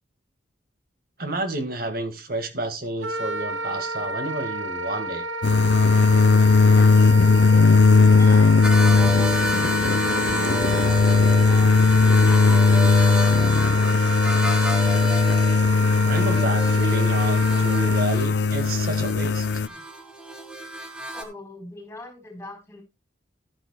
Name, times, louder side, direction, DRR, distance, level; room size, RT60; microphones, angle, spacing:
voice 1, 1.2-5.2 16.0-19.5, right 2 dB, 50° right, 1.8 m, -30 dB
Wind instrument woodwind instrument, 3.0-18.1, right 2 dB, 85° right, 0.9 m, -31 dB
sound 1, 5.4-19.7, left 4 dB, 60° left, 0.5 m, -18 dB
voice 2, 6.7-7.9 8.2-11.8 12.1-13.4 21.1-22.8, left 2 dB, 15° left, 4.0 m, -42 dB
sound 2, 8.6-21.2, left 1 dB, 5° right, 1.4 m, -31 dB
13.5 x 11.5 x 2.3 m
head